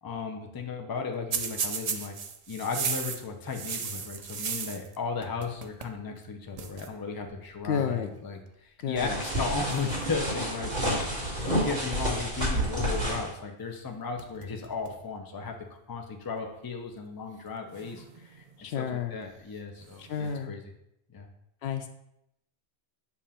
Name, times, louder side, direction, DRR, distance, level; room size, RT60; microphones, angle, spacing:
voice 1, 0.0-2.1 2.5-15.5 15.9-18.5 18.8-20.6 21.1-21.3, left 5 dB, 25° left, 2 dB, 0.5 m, -35 dB
sound 1, 1.3-5.0 5.2-6.0 6.2-6.3 6.6-6.9 7.8-8.0 8.8-9.2 9.7-10.7 13.7-13.9 14.2-15.0 15.4-15.5 16.4-16.5 17.7-18.6 19.8-20.4, right 6 dB, 55° right, 0.4 m, -36 dB
voice 2, 7.6-8.1 8.8-9.2 18.6-19.2 20.0-20.6 21.6-21.9, left 8 dB, 75° left, 7 dB, 0.8 m, -31 dB
sound 2, 9.0-13.3, right 1 dB, 40° right, 2.0 m, -30 dB
7.1 x 2.5 x 5.6 m, 0.80 s
omnidirectional pair, 1.1 m